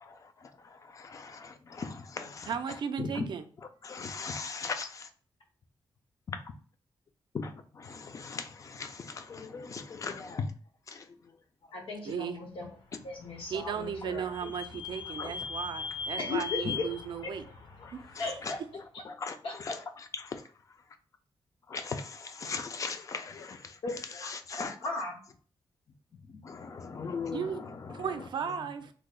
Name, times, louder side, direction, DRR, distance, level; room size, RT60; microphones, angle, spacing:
voice 1, 0.6-2.5 3.0-3.3 3.8-5.1 6.3-6.4 7.3-10.5 10.9-11.1 15.2-15.3 16.7-16.8 17.8-18.6 19.1-20.4 21.7-23.8 24.2-24.7 26.3-28.0, left 5 dB, 40° left, 0.4 m, -39 dB
voice 2, 2.2-3.5 12.0-12.4 13.5-17.4 17.9-18.3 27.3-28.9, right 7 dB, 60° right, 0.4 m, -36 dB
voice 3, 11.7-12.7 13.0-14.4 16.2-16.9 17.2-17.3 18.2-18.6 19.4-19.8 23.8-23.9 24.2-25.2, left 3 dB, 90° left, 1.1 m, -37 dB
Vehicle / Squeak, 12.9-18.5, left 5 dB, 60° left, 0.8 m, -40 dB
3.1 x 2.0 x 3.6 m
wide cardioid pair, 150°, 9 cm